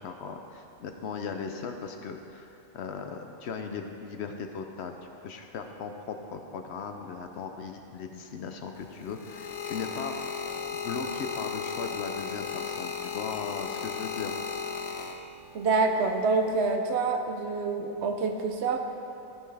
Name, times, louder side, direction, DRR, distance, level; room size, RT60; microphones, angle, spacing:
voice 1, 0.0-10.2 10.7-14.3, left 5 dB, 65° left, 5 dB, 0.7 m, -38 dB
sound 1, 8.8-15.6 16.4-16.7, left 6 dB, 90° left, 1.2 m, -35 dB
voice 2, 15.5-18.8, right 3 dB, 60° right, 4 dB, 0.8 m, -26 dB
14.5 x 5.5 x 3.3 m, 2.9 s
omnidirectional pair, 1.5 m